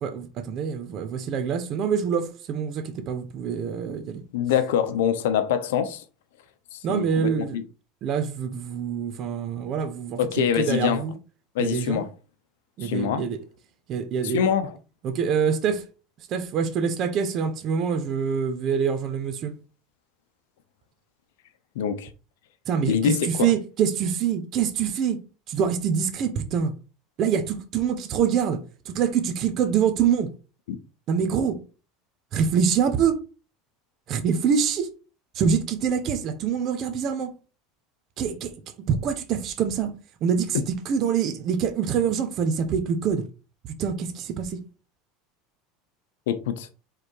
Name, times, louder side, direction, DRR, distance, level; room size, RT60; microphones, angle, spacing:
voice 1, 0.0-4.2 6.8-7.6 8.0-11.1 11.6-12.0 12.8-13.4 13.9-14.4 15.0-15.9 16.3-19.6 22.7-25.2 25.5-26.8 27.2-30.3 31.1-31.6 32.3-33.2 34.1-34.9 35.3-37.3 38.2-38.5 38.9-39.9 40.2-43.2 43.6-44.6, right 7 dB, 45° right, 1.2 m, -25 dB
voice 2, 4.3-6.0 6.7-7.6 10.2-11.0 11.5-12.0 12.8-13.2 14.3-14.7 21.7-22.1 22.9-23.5 30.7-30.8 46.3-46.7, left 8 dB, 85° left, 0.9 m, -24 dB
5.1 x 4.0 x 4.7 m
supercardioid pair, 135°, 0 cm